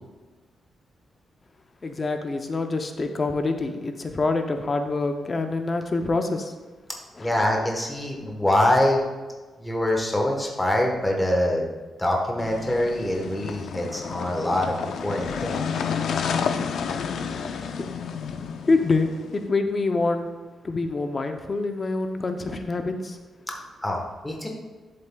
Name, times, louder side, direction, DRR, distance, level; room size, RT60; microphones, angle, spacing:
voice 1, 1.8-6.5 7.2-7.3 17.8-17.9 18.7-20.3 20.6-23.2, left 3 dB, 30° left, 6 dB, 0.6 m, -26 dB
voice 2, 7.2-9.0 9.6-11.7 12.0-15.8 23.5-23.6 23.8-24.5, left 1 dB, 10° left, 0 dB, 1.1 m, -24 dB
sound 1, 12.4-19.4, left 6 dB, 70° left, 0.5 m, -30 dB
11.0 x 7.6 x 2.3 m, 1.3 s
wide cardioid pair, 155°, 0 cm